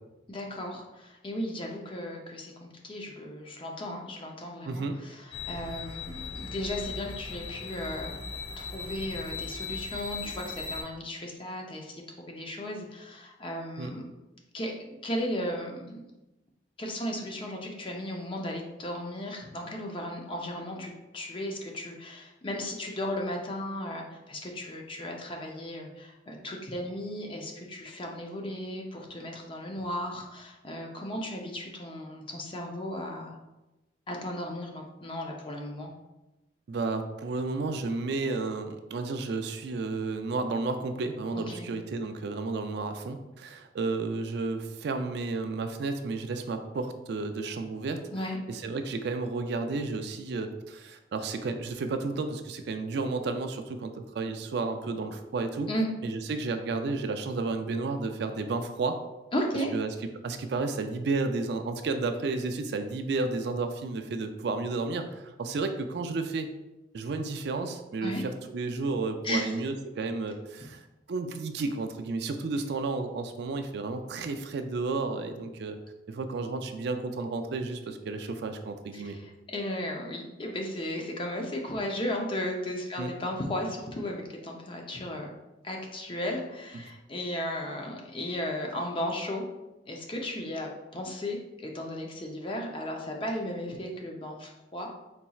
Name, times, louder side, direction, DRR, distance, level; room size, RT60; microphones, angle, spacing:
voice 1, 0.3-8.2 8.6-14.0 14.5-16.1 16.8-33.4 34.1-35.9 41.3-41.7 48.1-48.4 55.7-55.9 59.3-59.7 68.0-68.2 69.2-69.6 78.9-85.3 85.6-89.5 89.8-94.9, left 1 dB, 30° left, 1 dB, 0.5 m, -35 dB
voice 2, 4.7-5.0 13.8-13.9 36.7-48.0 48.5-55.7 56.0-59.0 59.7-59.9 60.2-66.5 66.9-70.8 71.1-75.8 76.1-79.2 83.0-83.1 86.7-86.8, right 3 dB, 60° right, 7 dB, 0.4 m, -32 dB
sound 1, 5.3-10.8, left 4 dB, 75° left, 0.7 m, -38 dB
4.3 x 4.0 x 2.3 m, 1.0 s
head